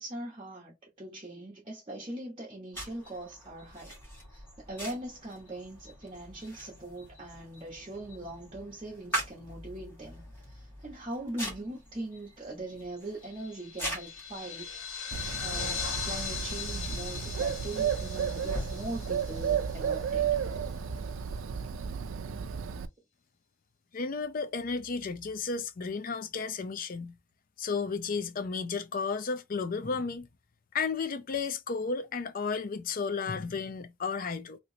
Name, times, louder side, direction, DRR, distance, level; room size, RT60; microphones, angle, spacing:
voice 1, 0.0-3.9 4.3-20.3, right 1 dB, 25° right, 1.0 m, -41 dB
sound 1, 2.7-21.8, equal, 10° left, 1.6 m, -44 dB
sound 2, 13.4-20.2, left 6 dB, 80° left, 1.0 m, -39 dB
Bird, 15.1-22.9, right 7 dB, 85° right, 0.4 m, -33 dB
voice 2, 23.9-27.1 27.6-30.3 30.7-34.6, left 5 dB, 45° left, 0.5 m, -33 dB
3.0 x 2.9 x 2.7 m
head